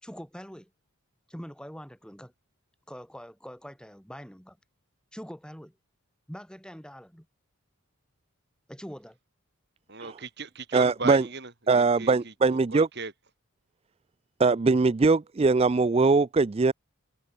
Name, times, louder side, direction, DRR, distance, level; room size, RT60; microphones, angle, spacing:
voice 1, 0.0-0.7 1.3-2.3 2.9-4.6 5.1-5.7 6.3-7.3 8.7-9.2, equal, 5° left, 4.8 m, -43 dB
voice 2, 9.9-13.1, right 4 dB, 50° right, 4.4 m, -38 dB
voice 3, 10.7-11.2 11.7-12.9 14.4-16.7, right 4 dB, 25° right, 0.3 m, -21 dB
head